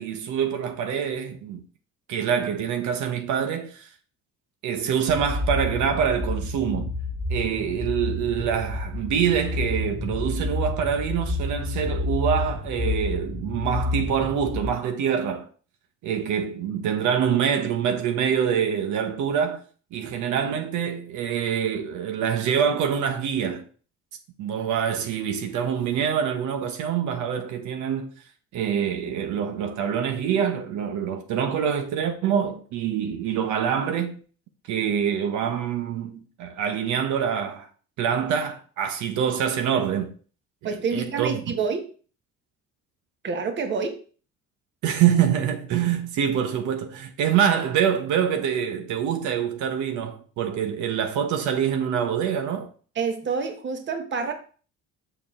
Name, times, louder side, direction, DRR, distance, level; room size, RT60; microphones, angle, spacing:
voice 1, 0.0-1.6 2.1-3.9 4.6-6.9 7.3-15.5 16.0-19.6 19.9-23.6 24.4-28.1 28.5-34.2 34.7-37.7 38.0-40.1 40.9-41.4 44.8-52.7, right 8 dB, 75° right, 1.1 m, -25 dB
sound 1, 5.1-14.7, left 2 dB, 10° left, 1.0 m, -29 dB
voice 2, 40.6-41.9 43.2-44.0 52.9-54.3, right 5 dB, 40° right, 1.4 m, -27 dB
7.1 x 6.6 x 3.7 m
cardioid pair, 150°, 30 cm